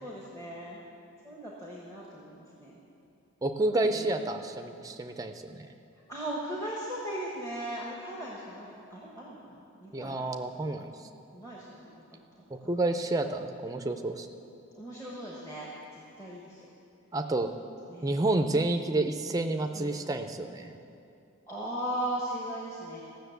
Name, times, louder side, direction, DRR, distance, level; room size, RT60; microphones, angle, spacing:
voice 1, 0.0-0.8 1.2-2.8 3.9-4.1 6.1-10.3 11.3-12.2 14.7-16.6 17.9-18.2 19.7-19.9 21.5-23.0, right 1 dB, 15° left, -5 dB, 1.3 m, -38 dB
voice 2, 3.4-5.7 9.9-10.9 12.5-14.3 17.1-17.5 18.0-20.8, right 2 dB, 15° right, 6 dB, 0.5 m, -29 dB
15.0 x 6.5 x 8.0 m, 2.7 s
head